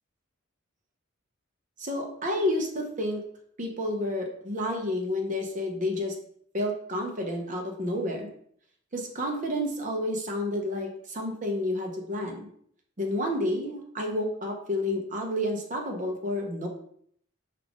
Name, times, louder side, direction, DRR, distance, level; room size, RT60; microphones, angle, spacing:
voice 1, 1.8-3.2 3.6-6.1 6.5-8.3 8.9-12.5 13.0-16.7, left 1 dB, 35° right, 2 dB, 0.8 m, -30 dB
4.8 x 2.5 x 3.4 m, 0.65 s
head